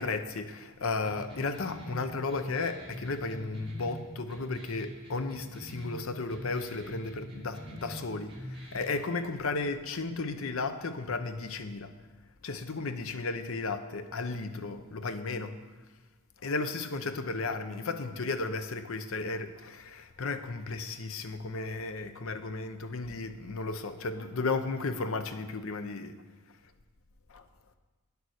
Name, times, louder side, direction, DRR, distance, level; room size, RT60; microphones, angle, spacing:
voice 1, 0.0-11.9 12.4-15.6 16.4-26.2 27.3-27.4, left 3 dB, 65° left, 9 dB, 0.7 m, -34 dB
sound 1, 1.0-9.0, equal, 25° right, 2.1 m, -44 dB
9.3 x 6.8 x 6.4 m, 1.3 s
head